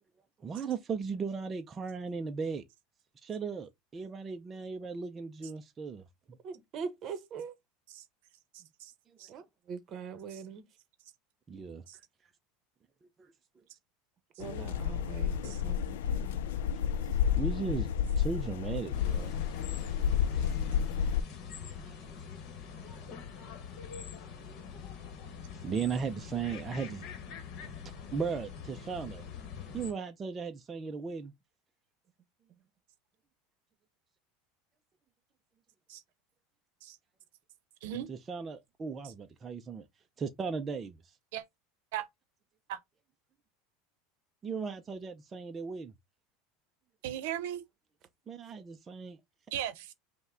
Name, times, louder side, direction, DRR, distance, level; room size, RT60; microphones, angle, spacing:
voice 1, 0.4-2.6 3.2-6.4 11.5-11.8 13.0-13.3 17.3-19.4 20.4-20.6 21.8-22.0 24.3-24.4 25.6-27.1 27.8-29.2 29.7-31.3 38.1-39.8 40.2-41.1 44.4-45.9 48.3-49.2, right 5 dB, 20° right, 0.4 m, -37 dB
voice 2, 6.4-7.5 9.3-10.6 14.4-15.8 16.1-16.4, right 6 dB, 35° right, 0.9 m, -42 dB
voice 3, 8.5-8.9 9.2-9.3 10.3-10.4 11.9-12.0 15.4-15.6 35.9-36.0 36.8-37.0 37.8-38.1 41.3-41.4 41.9-42.1 42.7-42.8 47.0-47.6 49.5-49.9, right 11 dB, 75° right, 0.7 m, -37 dB
sound 1, 14.4-21.2, left 8 dB, 90° left, 0.4 m, -31 dB
sound 2, 18.9-29.9, left 6 dB, 50° left, 1.1 m, -44 dB
5.5 x 2.1 x 3.6 m
supercardioid pair, 145°, 0 cm